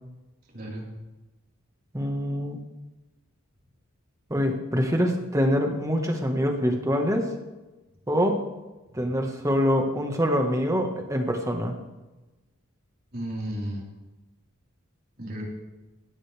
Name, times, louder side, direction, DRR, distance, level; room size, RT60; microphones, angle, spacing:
voice 1, 0.5-0.9 13.1-13.8 15.2-15.4, right 1 dB, 45° right, -4 dB, 4.6 m, -33 dB
voice 2, 1.9-2.6 4.3-7.3 8.1-8.4 8.9-11.8, equal, 15° right, 2 dB, 1.7 m, -25 dB
18.5 x 13.0 x 3.6 m, 1.1 s
head